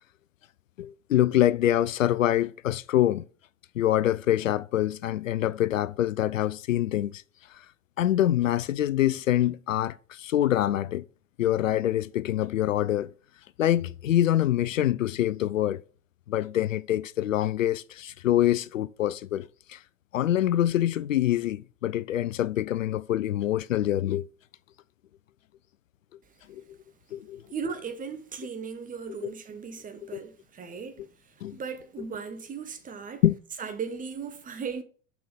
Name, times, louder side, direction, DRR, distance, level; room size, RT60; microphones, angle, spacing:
voice 1, 0.8-3.3 3.8-7.2 8.0-11.0 11.4-13.1 13.6-15.8 16.3-19.8 20.1-24.3 26.5-26.8 27.1-27.4 29.2-29.3 30.1-30.2 31.4-31.6 33.2-33.3, left 12 dB, 70° left, 0.5 m, -25 dB
voice 2, 27.5-31.1 31.5-33.2 33.6-34.8, right 6 dB, 20° right, 1.3 m, -37 dB
6.3 x 5.5 x 6.4 m
figure-of-eight pair, 85°, 41 cm